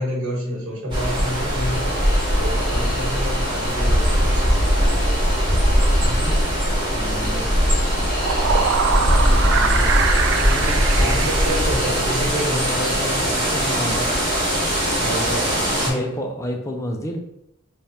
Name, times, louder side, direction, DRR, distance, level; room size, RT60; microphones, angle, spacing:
voice 1, 0.0-1.9 2.3-4.7 11.0-12.8 15.0-16.1, equal, 85° right, -3 dB, 1.3 m, -28 dB
sound 1, 0.9-15.9, equal, 25° right, 0.9 m, -20 dB
sound 2, 1.7-13.7, left 3 dB, 45° left, 1.1 m, -41 dB
voice 2, 6.0-6.3 6.9-8.3 9.2-11.5 12.6-14.1 14.9-17.2, equal, 15° left, 2 dB, 0.4 m, -32 dB
sound 3, 7.9-12.4, right 6 dB, 70° right, 0.3 m, -24 dB
3.3 x 2.3 x 4.1 m, 0.80 s
head